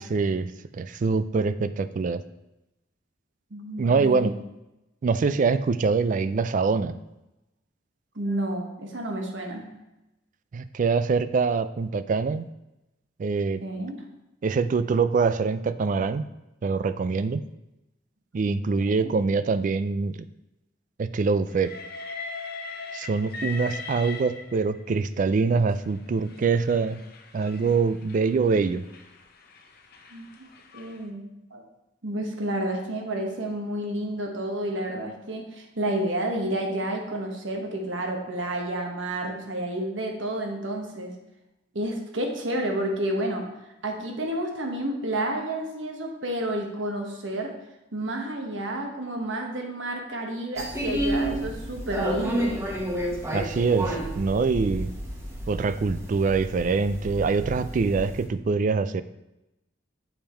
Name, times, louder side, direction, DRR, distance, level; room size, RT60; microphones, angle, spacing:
voice 1, 0.0-2.2 3.8-4.3 5.0-7.0 10.5-12.5 13.2-13.6 14.4-16.3 16.6-17.4 18.3-20.3 21.0-21.7 22.9-27.0 27.3-28.8 53.3-54.9 55.5-59.0, right 4 dB, 40° right, 14 dB, 0.3 m, -24 dB
voice 2, 3.5-4.4 8.1-9.7 13.6-14.0 18.9-19.1 30.1-30.5 30.7-31.6 32.0-41.1 41.7-43.4 43.8-47.5 47.9-52.6, right 1 dB, 75° right, 2 dB, 1.3 m, -30 dB
Train, 21.5-24.9 25.8-31.0, left 4 dB, 55° left, 0.8 m, -40 dB
sound 1, 50.6-58.2, right 1 dB, 15° right, 1.1 m, -31 dB
7.2 x 5.3 x 4.4 m, 0.95 s
head